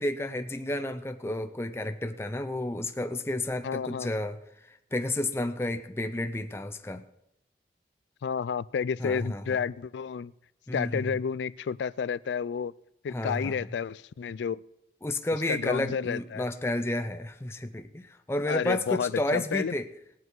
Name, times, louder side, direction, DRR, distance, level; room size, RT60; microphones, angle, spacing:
voice 1, 0.0-4.4 4.7-7.0 9.0-9.6 10.7-11.1 13.1-13.6 15.0-19.9, left 1 dB, 15° left, 8 dB, 0.5 m, -31 dB
voice 2, 3.6-4.1 8.2-10.3 10.7-12.7 13.0-14.6 15.5-16.4 18.5-19.7, left 6 dB, 85° left, 20 dB, 0.3 m, -31 dB
19.5 x 8.1 x 4.7 m, 0.85 s
head